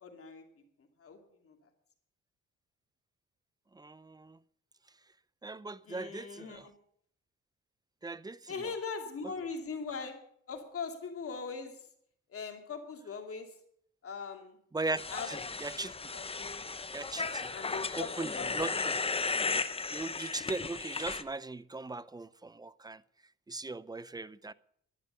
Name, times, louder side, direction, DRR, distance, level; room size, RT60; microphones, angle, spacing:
voice 1, 0.0-0.4 1.0-1.2 1.4-1.6 5.9-6.7 8.5-10.2 10.5-11.9 12.3-13.5 14.0-14.6 15.1-15.8 16.1-16.6 17.5-18.5, left 5 dB, 50° left, 2.7 m, -41 dB
voice 2, 3.7-4.4 5.4-6.7 8.0-8.7 14.7-15.0 15.3-15.9 16.9-17.5 18.0-19.0 19.9-23.0 23.5-24.5, right 3 dB, 15° right, 0.5 m, -39 dB
sound 1, 15.0-21.2, left 4 dB, 20° left, 0.8 m, -35 dB
11.5 x 11.0 x 6.8 m
cardioid pair, 90°, 30 cm